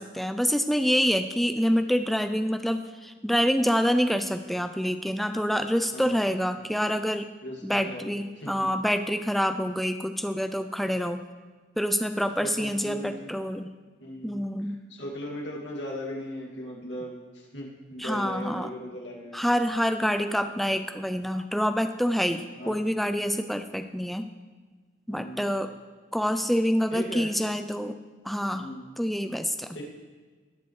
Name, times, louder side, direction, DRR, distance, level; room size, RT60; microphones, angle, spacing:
voice 1, 0.0-7.3 7.6-11.2 11.8-13.7 14.2-14.8 18.0-18.7 19.3-24.3 25.1-25.7 26.1-28.0 28.3-28.7 29.0-29.7, equal, ahead, 8 dB, 0.4 m, -26 dB
voice 2, 5.9-6.2 7.4-8.7 12.4-13.3 14.0-14.4 14.9-19.4 22.6-22.9 25.1-25.5 26.9-27.3 28.5-28.9 29.7-29.8, left 1 dB, 70° left, -2 dB, 2.5 m, -38 dB
19.0 x 6.9 x 3.2 m, 1.4 s
head